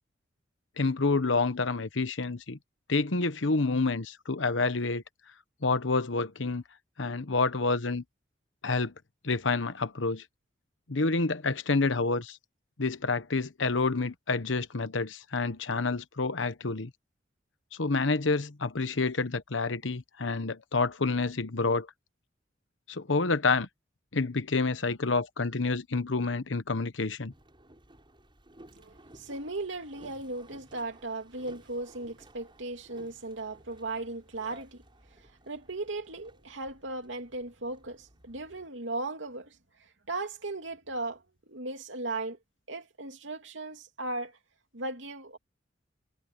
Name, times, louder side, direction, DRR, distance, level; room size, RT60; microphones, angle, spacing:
voice 1, 0.8-2.6 2.9-5.0 5.6-6.6 7.0-8.0 8.6-8.9 9.2-10.2 10.9-12.4 12.8-16.9 17.7-21.9 22.9-23.7 24.1-27.3, left 3 dB, 80° left, 1.1 m, -28 dB
Boat Water vehicle, 27.3-38.7, right 1 dB, 25° right, 7.2 m, -56 dB
voice 2, 28.7-34.8 35.2-42.4 42.7-44.4 44.7-45.4, right 2 dB, 75° right, 2.9 m, -37 dB
head